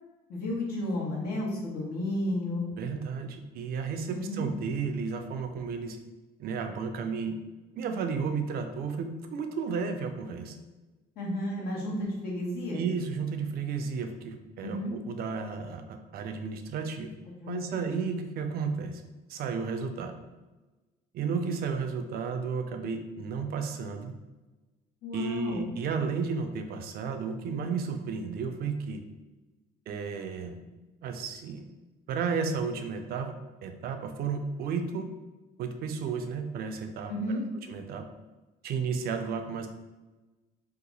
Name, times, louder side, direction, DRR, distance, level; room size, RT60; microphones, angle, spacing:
voice 1, 0.3-2.7 4.1-4.5 11.2-12.8 14.6-14.9 17.3-17.8 25.0-25.6 37.1-37.4, left 1 dB, 70° left, -3 dB, 1.2 m, -32 dB
voice 2, 2.8-6.0 6.4-7.4 7.8-10.5 12.7-17.1 17.5-19.0 19.3-20.2 21.1-24.1 25.1-29.0 29.9-30.6 31.0-31.6 32.1-33.3 33.6-35.1 35.6-37.4 37.7-38.0 38.6-39.7, right 5 dB, 65° right, 6 dB, 0.5 m, -33 dB
2.8 x 2.4 x 3.9 m, 1.2 s
cardioid pair, 110°, 17 cm